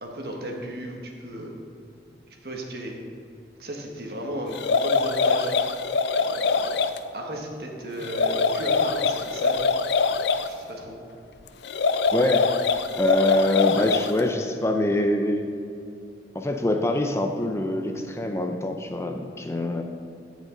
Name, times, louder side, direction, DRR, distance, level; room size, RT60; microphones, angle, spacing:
voice 1, 0.0-1.5 2.4-2.9 3.6-5.5 6.1-6.8 7.1-9.6 10.3-11.0, right 1 dB, 60° right, 1 dB, 1.3 m, -35 dB
sound 1, 4.5-7.0 8.0-10.5 11.6-14.2, left 4 dB, 75° left, 0.4 m, -23 dB
voice 2, 12.1-12.5 13.0-15.5 16.3-19.8, left 1 dB, 15° left, 4 dB, 0.4 m, -24 dB
15.0 x 5.3 x 3.8 m, 2.5 s
head